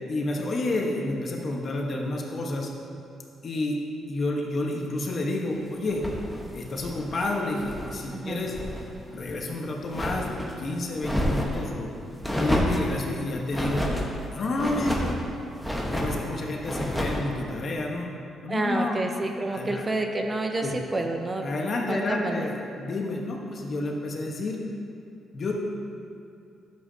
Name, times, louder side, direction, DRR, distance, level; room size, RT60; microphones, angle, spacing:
voice 1, 0.1-2.7 3.4-3.8 4.1-6.0 6.5-8.6 9.1-11.9 12.4-13.9 14.3-15.2 15.9-18.1 18.4-19.0 19.5-19.8 20.6-20.7 21.4-24.6 25.3-25.5, left 2 dB, 50° left, 0 dB, 1.2 m, -30 dB
sound 1, 5.9-8.0 8.3-8.8 9.2-10.5 11.0-11.6 12.2-12.9 13.5-14.1 14.5-15.2 15.6-16.2 16.6-17.3, equal, ahead, 1.2 m, -29 dB
voice 2, 8.1-8.5 18.5-21.5 21.9-22.5, right 2 dB, 25° right, 3 dB, 0.7 m, -29 dB
10.5 x 7.6 x 2.8 m, 2.5 s
cardioid pair, 90°, 0 cm